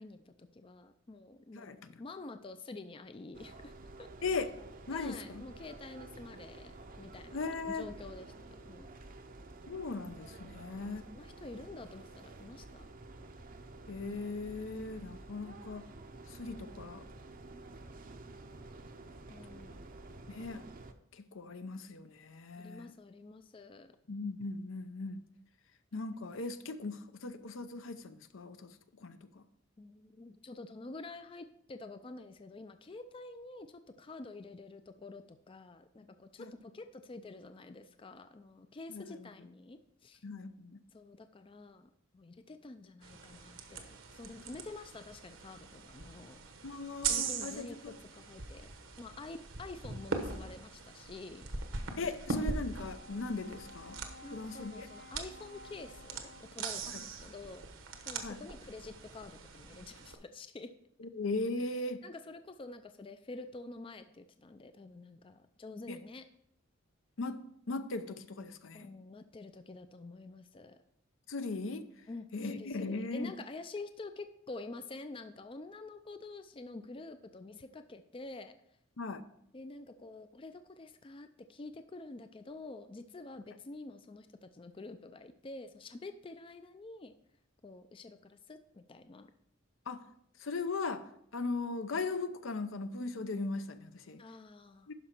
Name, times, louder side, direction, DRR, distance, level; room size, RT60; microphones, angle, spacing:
voice 1, 0.0-3.7 4.0-4.1 4.9-8.9 10.4-12.9 19.3-19.8 22.6-23.9 29.8-40.2 40.9-46.4 47.1-51.5 52.0-52.1 54.2-57.6 58.1-60.7 62.0-66.3 68.7-70.8 72.1-78.5 79.5-87.1 87.6-89.3 94.2-94.9, left 3 dB, 25° left, 9 dB, 0.4 m, -48 dB
sound 1, 3.3-20.9, right 2 dB, 45° right, 0.7 m, -51 dB
voice 2, 4.9-5.4 7.3-7.8 9.7-11.0 13.9-15.8 16.4-17.0 20.3-20.6 21.2-22.9 24.1-25.2 25.9-28.7 29.0-29.4 36.4-36.5 38.9-39.3 40.2-40.8 46.6-47.9 52.0-54.0 54.3-54.9 58.2-58.4 61.1-62.0 65.9-66.0 67.2-67.4 67.7-68.9 71.3-71.9 72.3-73.3 79.0-79.2 89.9-90.0 90.4-91.0 91.3-94.2 94.9-95.0, left 3 dB, 75° left, 10 dB, 0.7 m, -38 dB
sound 2, 43.0-60.1, right 4 dB, 75° right, 1.1 m, -41 dB
Brass instrument, 52.5-56.9, left 2 dB, 55° left, 1.0 m, -55 dB
11.5 x 5.0 x 4.4 m, 0.73 s
head